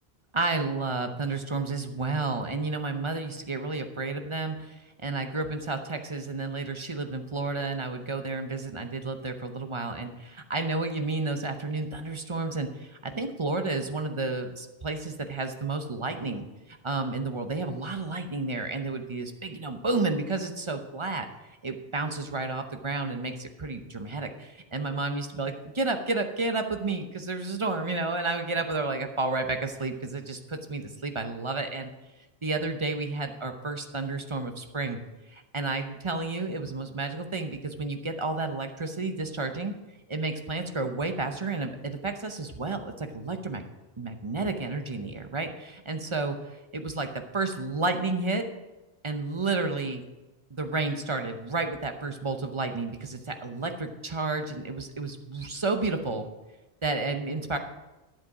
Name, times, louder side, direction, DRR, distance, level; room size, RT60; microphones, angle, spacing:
voice 1, 0.3-21.3 21.6-31.9 32.4-35.0 35.3-39.7 40.1-43.6 44.0-46.4 46.7-47.1 47.3-48.4 49.0-50.0 50.5-56.2 56.8-57.6, right 3 dB, 30° right, 6 dB, 0.7 m, -31 dB
11.0 x 7.6 x 4.9 m, 1.1 s
omnidirectional pair, 1.1 m